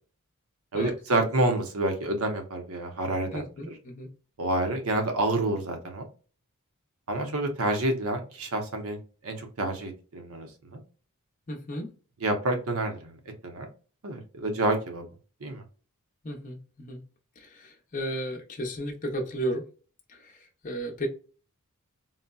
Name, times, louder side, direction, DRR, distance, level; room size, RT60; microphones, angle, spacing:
voice 1, 0.7-3.7 4.4-6.0 7.1-9.0 9.2-10.8 12.2-13.2 13.4-13.7 14.0-15.1 15.4-15.6, right 2 dB, 70° right, 5 dB, 0.8 m, -28 dB
voice 2, 3.3-4.1 11.5-11.9 16.2-17.0 17.4-19.6 20.1-21.1, right 1 dB, 35° left, 1 dB, 0.7 m, -34 dB
3.9 x 2.1 x 2.3 m, 0.38 s
head